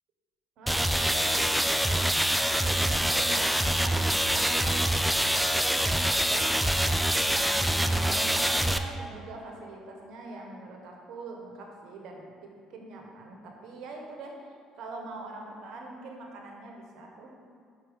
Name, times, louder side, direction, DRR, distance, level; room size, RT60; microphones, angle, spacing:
voice 1, 0.6-14.3 14.7-17.4, right 2 dB, 70° right, 1 dB, 1.1 m, -43 dB
sound 1, 0.7-8.8, right 1 dB, ahead, 0.4 m, -25 dB
6.1 x 4.4 x 5.1 m, 2.1 s
supercardioid pair, 65°, 0 cm